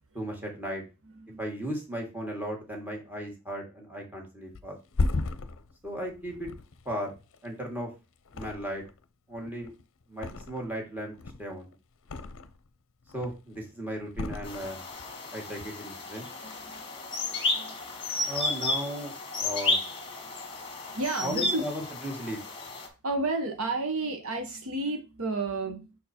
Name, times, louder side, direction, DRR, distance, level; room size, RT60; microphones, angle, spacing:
voice 1, 0.1-0.8 1.4-4.8 5.8-6.5 6.9-7.1 7.4-7.9 8.3-8.8 9.3-9.7 10.1-11.7 13.1-14.8 15.3-16.3 18.3-19.8 21.2-22.4, equal, 10° right, 0 dB, 1.8 m, -36 dB
Thump thud, 4.5-7.8 8.3-9.0 9.3-10.8 11.1-12.7 13.0-13.6 14.1-15.1 15.4-15.6, left 3 dB, 60° left, 0.6 m, -35 dB
sound 1, 14.4-22.9, left 2 dB, 25° left, 1.6 m, -32 dB
voice 2, 16.4-16.9 17.5-17.8 20.9-21.6 22.9-26.0, right 2 dB, 65° right, 5 dB, 1.1 m, -32 dB
5.9 x 4.5 x 4.3 m, 0.29 s
head